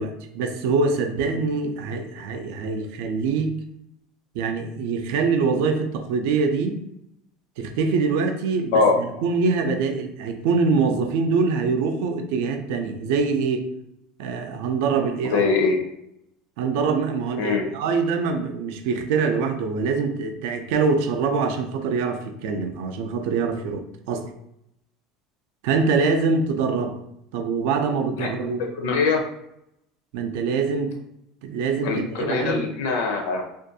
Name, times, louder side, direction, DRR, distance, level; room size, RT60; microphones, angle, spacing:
voice 1, 0.0-3.6 4.3-6.8 7.6-8.8 9.2-13.7 14.2-15.4 16.6-24.3 25.6-27.0 27.3-28.6 30.1-30.9 31.4-32.6, right 4 dB, 65° right, 6 dB, 0.3 m, -24 dB
voice 2, 15.3-15.8 17.4-17.6 28.2-29.2 31.8-33.5, left 4 dB, 75° left, 3 dB, 0.5 m, -22 dB
2.5 x 2.2 x 2.6 m, 0.79 s
cardioid pair, 175°, 0 cm